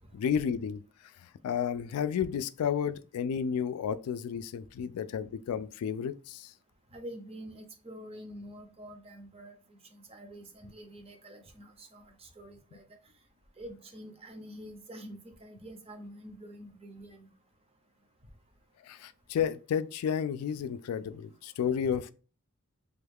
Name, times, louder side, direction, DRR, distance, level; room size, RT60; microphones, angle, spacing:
voice 1, 0.1-0.8 1.4-6.5 18.9-22.1, left 8 dB, 80° left, 0.3 m, -32 dB
voice 2, 6.9-9.5 9.9-12.8 13.6-17.3 21.9-22.0, equal, 25° right, 0.6 m, -47 dB
3.4 x 2.3 x 3.4 m
head